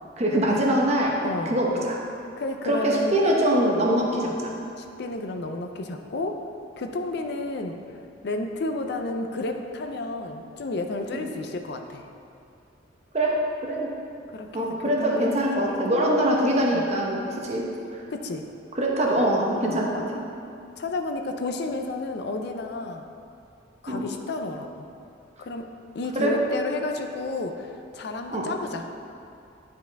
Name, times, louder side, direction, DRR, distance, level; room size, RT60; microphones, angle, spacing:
voice 1, 0.2-2.0 2.6-4.5 11.1-11.3 13.1-13.9 14.5-18.0 18.7-20.2 23.9-24.1 26.1-26.4 28.3-28.5, right 1 dB, 35° right, -1 dB, 0.9 m, -24 dB
voice 2, 1.2-1.6 2.4-3.2 4.8-6.4 6.8-7.8 8.2-12.1 14.3-16.1 16.7-16.8 18.1-18.5 19.6-19.8 20.8-23.0 23.8-24.9 25.4-28.9, left 2 dB, 60° left, 5 dB, 0.5 m, -31 dB
9.9 x 4.7 x 3.4 m, 2.6 s
head